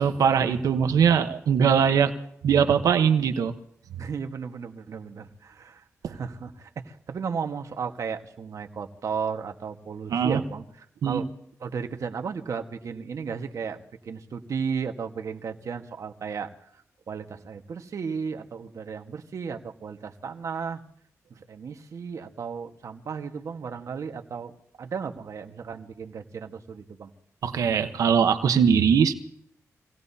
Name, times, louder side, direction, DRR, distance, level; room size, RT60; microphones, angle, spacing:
voice 1, 0.0-2.1 2.4-3.5 6.0-6.1 10.1-10.4 11.0-11.2 27.4-29.1, right 7 dB, 85° right, 8 dB, 1.1 m, -21 dB
voice 2, 4.0-10.6 11.0-11.3 11.6-20.8 21.5-24.5 24.8-27.1, right 6 dB, 65° right, 6 dB, 1.5 m, -34 dB
25.5 x 18.0 x 2.8 m, 0.69 s
cardioid pair, 65°, 6 cm